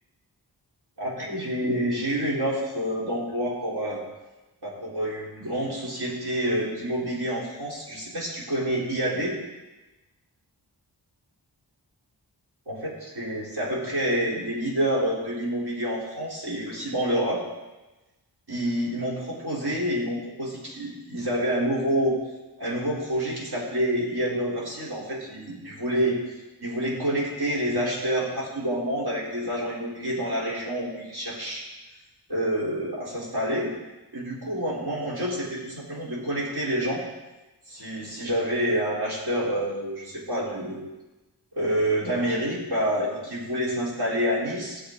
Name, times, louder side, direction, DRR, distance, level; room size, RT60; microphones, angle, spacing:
voice 1, 1.0-4.0 4.6-9.4 12.7-17.4 18.5-22.2 22.6-31.6 32.3-33.7 34.1-37.0 37.7-40.8 41.6-44.8, equal, 65° right, -5 dB, 4.2 m, -28 dB
17.0 x 7.6 x 4.0 m, 1.1 s
wide cardioid pair, 85°, 41 cm